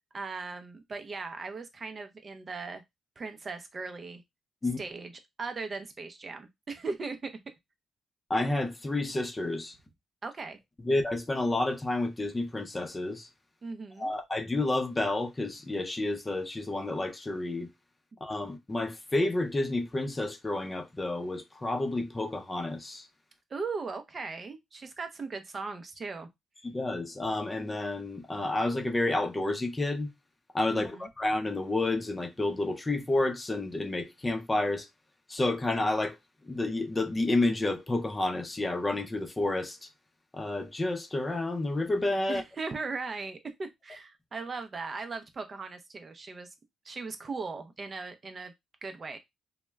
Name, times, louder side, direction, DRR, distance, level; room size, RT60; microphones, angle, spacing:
voice 1, 0.1-2.8 3.2-4.2 4.8-5.1 5.4-7.3 10.2-10.6 13.6-14.1 23.5-26.3 30.7-31.1 42.3-46.5 46.8-48.5 48.8-49.2, right 4 dB, 40° right, 0.5 m, -38 dB
voice 2, 8.3-9.7 10.8-13.3 14.0-17.7 18.2-23.1 26.6-30.1 30.5-34.9 35.3-36.2 36.5-39.9 40.3-42.4, left 2 dB, 20° left, 0.5 m, -30 dB
2.2 x 2.0 x 3.2 m
cardioid pair, 85°, 0 cm